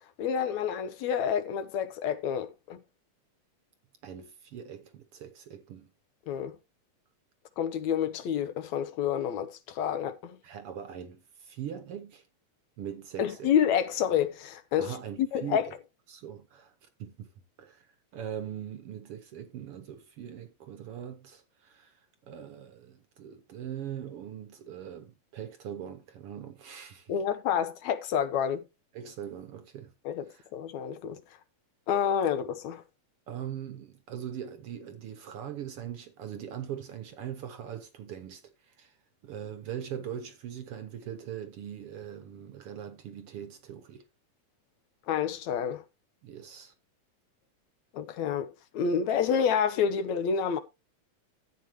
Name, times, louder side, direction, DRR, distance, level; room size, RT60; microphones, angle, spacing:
voice 1, 0.2-2.8 6.3-6.5 7.6-10.4 13.2-15.7 27.1-28.6 30.1-30.3 30.5-31.2 31.9-32.8 45.1-45.8 47.9-50.6, left 8 dB, 75° left, 2.3 m, -28 dB
voice 2, 4.0-5.9 10.4-12.2 12.8-13.5 14.8-15.7 16.1-17.3 17.6-27.1 28.9-29.9 30.3-30.5 33.3-39.0 39.2-44.0 46.2-46.7, right 9 dB, 65° right, 1.6 m, -41 dB
12.5 x 8.4 x 3.1 m
omnidirectional pair, 3.4 m